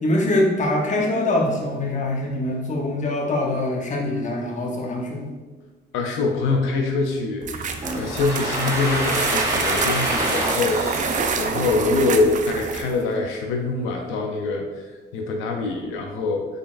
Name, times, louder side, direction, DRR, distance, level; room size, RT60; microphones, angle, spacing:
voice 1, 0.0-5.3, left 1 dB, 40° left, 0 dB, 0.8 m, -23 dB
voice 2, 5.9-14.8 15.1-16.5, left 3 dB, 90° left, 2 dB, 0.4 m, -24 dB
sound 1, 7.4-13.0, right 5 dB, 40° right, 0.4 m, -27 dB
Domestic sounds home sounds, 7.8-12.6, equal, 15° right, 1.2 m, -27 dB
4.0 x 3.3 x 2.4 m, 1.3 s
cardioid pair, 90°, 20 cm